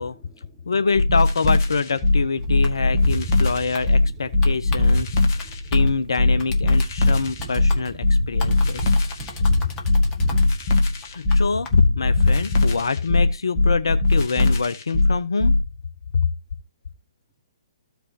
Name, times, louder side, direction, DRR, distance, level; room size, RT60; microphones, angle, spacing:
voice 1, 0.0-0.7 5.4-5.5, equal, 5° left, 3.5 m, -58 dB
voice 2, 0.7-9.1 11.1-15.5 16.1-16.3, left 4 dB, 70° left, 0.7 m, -25 dB
sound 1, 0.9-15.6, left 2 dB, 40° left, 1.7 m, -20 dB
Gunshot gunfire, 1.7-11.4 11.8-13.2, right 3 dB, 45° right, 4.0 m, -37 dB
sound 2, 2.4-11.9, left 2 dB, 20° left, 1.9 m, -37 dB
15.0 x 5.1 x 2.9 m
figure-of-eight pair, 125°, 3 cm